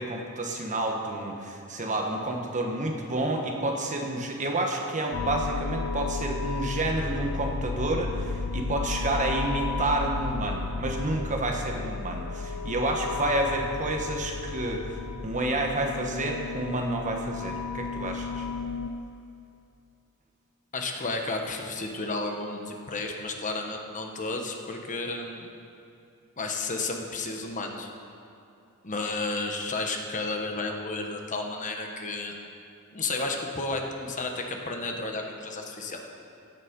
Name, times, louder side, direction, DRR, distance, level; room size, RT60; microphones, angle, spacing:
voice 1, 0.0-15.0 15.2-18.5, right 2 dB, 35° right, 1 dB, 1.3 m, -29 dB
sound 1, 5.1-18.9, left 4 dB, 60° left, 0.5 m, -33 dB
voice 2, 20.7-25.5 26.4-27.9 28.8-32.3 32.9-36.0, left 3 dB, 35° left, 2 dB, 1.2 m, -32 dB
16.0 x 7.5 x 5.2 m, 2.6 s
head